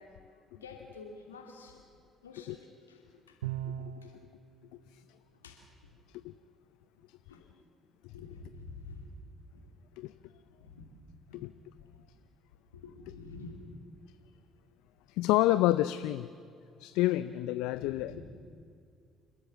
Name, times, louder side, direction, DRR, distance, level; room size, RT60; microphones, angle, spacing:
voice 1, 0.0-1.8 2.2-3.4 4.0-4.1 5.4-5.6 7.0-7.4 8.1-9.1 9.5-9.7 10.6-10.9 11.2-11.4 11.9-12.0 12.7-13.8 17.6-18.2, left 3 dB, 90° left, 2 dB, 2.6 m, -49 dB
Bowed string instrument, 3.4-4.3, right 11 dB, 80° right, 0.5 m, -37 dB
voice 2, 15.1-16.3 16.8-18.2, left 16 dB, 70° left, 14 dB, 0.4 m, -28 dB
29.0 x 13.0 x 7.4 m, 2.4 s
hypercardioid pair, 50°, 0 cm